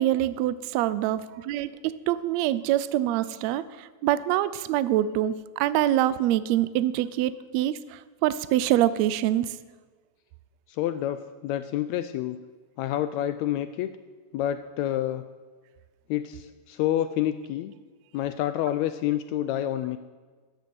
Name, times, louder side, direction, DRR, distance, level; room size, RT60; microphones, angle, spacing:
voice 1, 0.0-9.6, right 13 dB, 85° right, 16 dB, 1.5 m, -25 dB
voice 2, 10.7-12.4 12.8-13.9 14.3-15.3 16.1-17.7 18.1-20.0, left 12 dB, 85° left, 11 dB, 1.6 m, -28 dB
14.5 x 6.9 x 9.2 m, 1.4 s
omnidirectional pair, 3.7 m